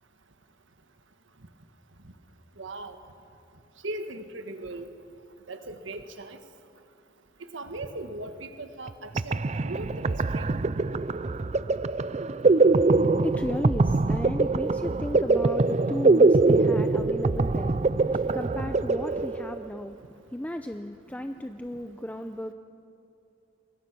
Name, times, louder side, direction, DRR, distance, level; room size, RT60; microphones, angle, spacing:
voice 1, 2.6-3.0 3.8-4.9 5.5-6.4 7.5-10.6, right 2 dB, 70° right, 7 dB, 1.5 m, -38 dB
sound 1, 8.9-9.0 9.2-19.8, right 3 dB, 35° right, 0.5 m, -23 dB
voice 2, 13.0-22.5, left 1 dB, 10° left, 7 dB, 0.6 m, -35 dB
28.0 x 21.5 x 6.1 m, 2.7 s
head